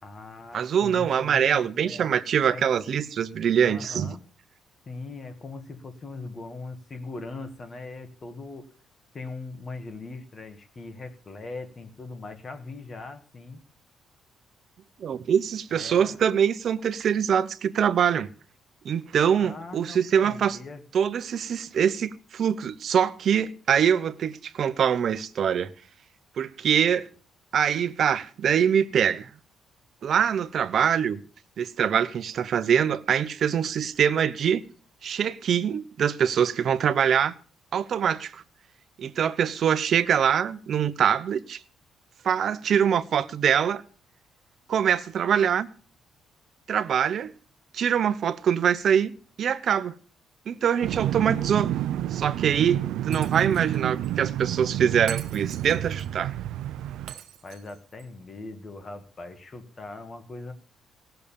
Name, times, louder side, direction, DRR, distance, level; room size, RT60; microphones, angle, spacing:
voice 1, 0.0-2.1 2.5-2.7 3.6-4.2 4.9-8.7 9.1-13.6 15.7-16.2 19.4-20.8 57.4-60.5, left 3 dB, 25° left, 1.8 m, -40 dB
voice 2, 0.5-4.1 15.0-18.3 18.8-20.6 20.9-25.7 26.4-27.0 27.5-29.3 30.0-31.2 31.6-34.7 35.0-37.3 37.7-38.4 39.0-41.6 42.2-43.8 44.7-45.7 46.7-47.3 47.7-49.1 49.4-49.9 50.5-51.7 52.1-56.3, right 8 dB, 50° right, 0.9 m, -24 dB
sound 1, 50.8-57.1, right 12 dB, 85° right, 0.5 m, -29 dB
Shatter, 53.1-53.8 54.0-54.1 55.1-56.1 57.1-58.1, right 11 dB, 70° right, 1.2 m, -43 dB
18.0 x 6.8 x 7.1 m
cardioid pair, 145°, 0 cm